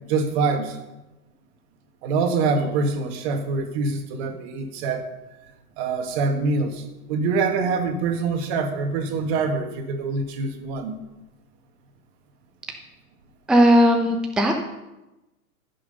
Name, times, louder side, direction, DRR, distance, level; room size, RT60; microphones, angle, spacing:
voice 1, 0.1-0.8 2.0-5.1 5.8-11.0, right 4 dB, 45° right, 6 dB, 1.9 m, -25 dB
voice 2, 13.5-14.6, equal, ahead, 2 dB, 0.8 m, -17 dB
14.5 x 6.3 x 5.5 m, 1.0 s
hypercardioid pair, 120°, 44 cm